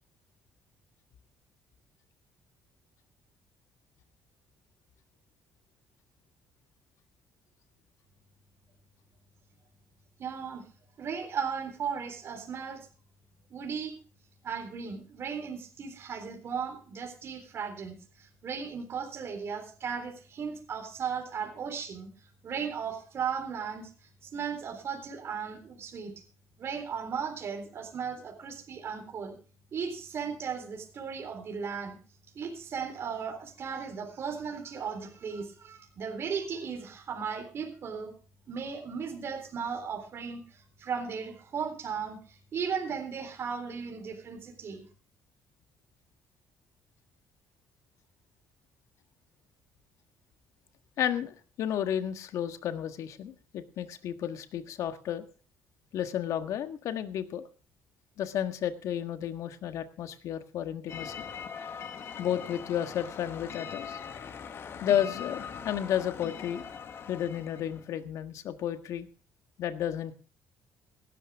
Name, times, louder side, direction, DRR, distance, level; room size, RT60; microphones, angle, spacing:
voice 1, 10.2-10.6 11.0-12.9 13.5-13.9 14.4-22.1 22.4-23.9 24.2-26.1 26.6-29.3 29.7-32.0 32.4-38.1 38.5-44.8, right 6 dB, 50° right, 3 dB, 3.7 m, -36 dB
voice 2, 51.0-55.2 55.9-57.5 58.2-61.1 62.2-64.0 64.8-66.6 67.1-69.1 69.6-70.1, left 10 dB, 70° left, 9 dB, 1.6 m, -32 dB
sound 1, 60.9-67.9, left 7 dB, 45° left, 1.7 m, -41 dB
17.0 x 13.0 x 3.6 m, 0.37 s
cardioid pair, 115°, 6 cm